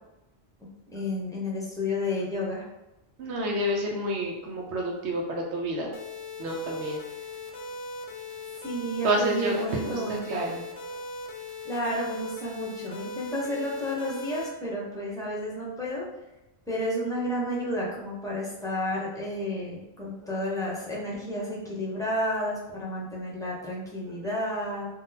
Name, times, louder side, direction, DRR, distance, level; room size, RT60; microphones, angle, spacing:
voice 1, 0.6-2.7 8.6-10.2 11.6-16.0 16.7-24.9, left 1 dB, 5° left, -5 dB, 0.6 m, -31 dB
voice 2, 3.2-5.9 6.4-7.0 9.0-10.6 10.9-11.0 20.2-20.3 24.1-24.2, right 1 dB, 85° right, 0 dB, 0.9 m, -29 dB
sound 1, 5.9-14.5, left 2 dB, 80° left, 0.9 m, -39 dB
3.7 x 2.2 x 2.7 m, 0.95 s
omnidirectional pair, 1.1 m